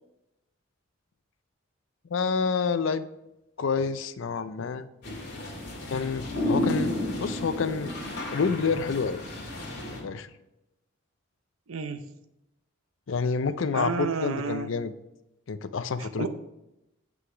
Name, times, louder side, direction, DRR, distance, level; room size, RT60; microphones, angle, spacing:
voice 1, 2.1-3.1 3.6-4.9 5.8-6.9 7.2-7.9 8.3-9.2 9.9-10.3 13.1-14.9 15.5-16.3, left 5 dB, 70° left, 13 dB, 0.5 m, -28 dB
sound 1, 5.0-10.0, left 1 dB, 55° left, 2.2 m, -32 dB
voice 2, 11.7-12.1 13.7-14.7 16.0-16.3, right 4 dB, 90° right, 10 dB, 0.7 m, -31 dB
8.0 x 5.8 x 4.9 m, 0.91 s
head